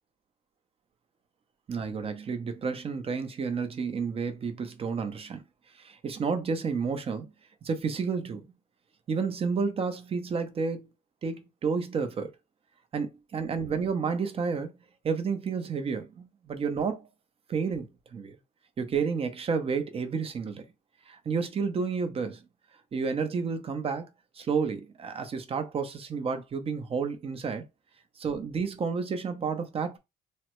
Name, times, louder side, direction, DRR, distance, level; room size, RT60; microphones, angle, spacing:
voice 1, 1.7-5.4 5.8-7.3 7.6-8.4 9.1-10.9 11.2-12.3 12.9-14.7 15.0-17.1 17.5-18.4 18.8-20.6 21.1-22.4 22.9-24.1 24.4-27.6 28.2-30.0, right 5 dB, 35° right, 0.7 m, -31 dB
3.2 x 2.1 x 3.0 m
cardioid pair, 110°, 17 cm